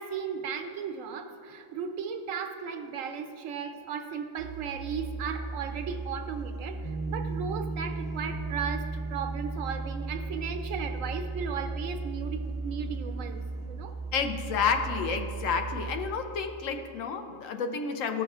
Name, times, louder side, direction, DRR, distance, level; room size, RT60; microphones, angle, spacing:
voice 1, 0.0-13.9, right 6 dB, 80° right, 6 dB, 1.0 m, -36 dB
Musical instrument, 4.4-16.4, right 3 dB, 25° right, 1.5 m, -36 dB
Piano, 6.8-13.5, right 3 dB, 35° left, 0.8 m, -40 dB
voice 2, 14.1-18.2, left 6 dB, 75° left, 6 dB, 1.0 m, -30 dB
13.5 x 6.2 x 2.3 m, 2.4 s
omnidirectional pair, 1.4 m